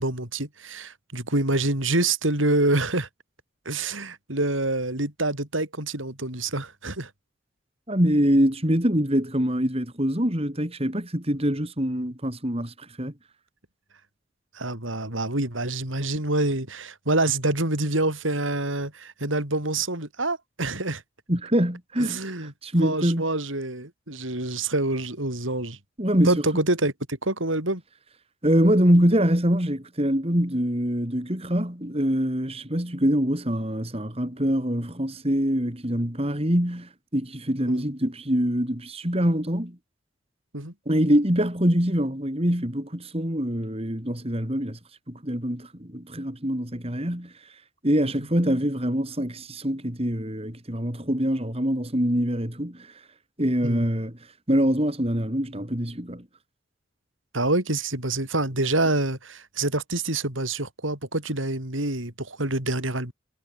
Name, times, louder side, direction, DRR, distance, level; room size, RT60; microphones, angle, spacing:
voice 1, 0.0-3.1 3.7-7.1 14.5-21.0 22.0-22.5 22.8-25.8 26.3-27.8 37.7-37.8 40.5-40.7 48.0-48.1 53.6-53.8 57.3-63.1, right 2 dB, 85° right, 7.2 m, -26 dB
voice 2, 7.9-13.1 21.3-23.3 26.0-26.4 28.4-39.8 40.9-44.8 45.1-47.3 47.8-52.9 53.4-54.2 54.5-56.2, equal, 30° right, 4.6 m, -24 dB
head